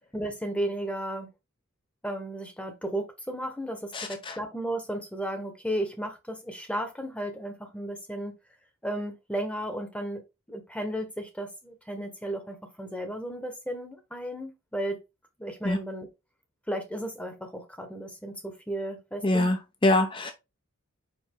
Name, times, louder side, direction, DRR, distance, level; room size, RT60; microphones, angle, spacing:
voice 1, 0.1-1.3 2.0-8.4 8.8-10.2 10.5-15.0 15.4-16.1 16.7-19.5, right 1 dB, 5° left, 1.1 m, -34 dB
voice 2, 3.9-4.4 15.6-15.8 19.2-20.3, left 1 dB, 25° left, 0.7 m, -25 dB
5.4 x 5.2 x 3.6 m
head